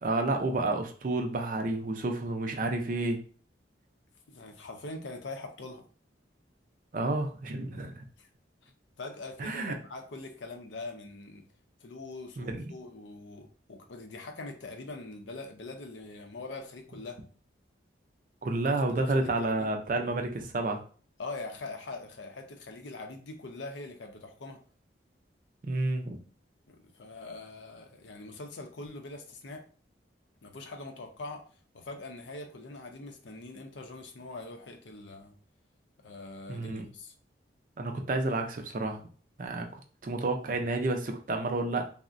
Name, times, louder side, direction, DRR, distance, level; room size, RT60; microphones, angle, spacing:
voice 1, 0.0-3.2 6.9-8.0 9.4-9.7 12.4-12.7 18.4-20.8 25.6-26.2 36.5-36.9 37.8-39.0 39.4-39.7 40.0-41.9, right 2 dB, 45° right, 4 dB, 0.4 m, -30 dB
voice 2, 4.3-5.8 8.2-8.3 8.6-8.7 9.0-11.4 11.8-17.2 19.2-19.7 21.2-24.6 26.7-29.6 30.4-31.4 31.7-35.3 36.0-37.1, left 3 dB, 80° left, 5 dB, 0.6 m, -43 dB
3.5 x 2.0 x 2.5 m, 0.41 s
head